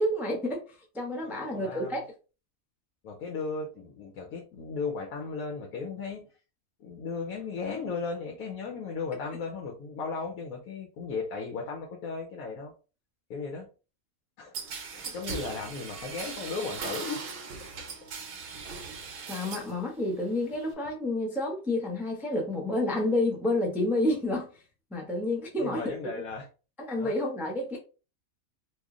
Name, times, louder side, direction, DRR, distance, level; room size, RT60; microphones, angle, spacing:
voice 1, 0.0-2.0 19.3-24.5 24.9-26.0 26.8-27.8, left 1 dB, ahead, -1 dB, 0.5 m, -29 dB
voice 2, 1.2-1.9 3.0-6.2 6.8-12.7 13.3-13.7 14.4-14.5 14.9-17.2 25.6-26.5 27.0-27.1, left 4 dB, 80° left, 0 dB, 1.1 m, -36 dB
sound 1, 14.5-19.8 20.1-20.7, right 5 dB, 55° right, 0.7 m, -39 dB
3.1 x 2.3 x 3.5 m, 0.34 s
omnidirectional pair, 1.5 m